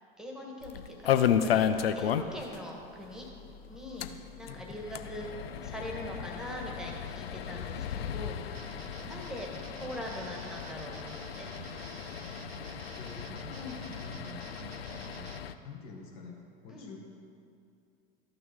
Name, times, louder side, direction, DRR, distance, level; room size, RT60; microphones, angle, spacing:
voice 1, 0.2-3.3 3.7-4.1 4.4-8.7 9.0-9.5 9.7-11.5 13.5-13.8 16.7-16.9, left 1 dB, ahead, -1 dB, 1.6 m, -42 dB
sound 1, 0.6-2.6 2.8-2.9 3.2-3.3 3.9-15.5, left 9 dB, 75° left, 0.5 m, -34 dB
sound 2, 2.8-14.7, left 6 dB, 25° left, 0.4 m, -53 dB
voice 2, 4.5-4.8 12.6-13.6 14.0-14.4 15.6-17.0, left 5 dB, 55° left, -1 dB, 1.9 m, -48 dB
sound 3, 8.5-15.4, right 8 dB, 75° right, 0.5 m, -49 dB
13.0 x 5.9 x 3.6 m, 2.5 s
figure-of-eight pair, 80°, 30 cm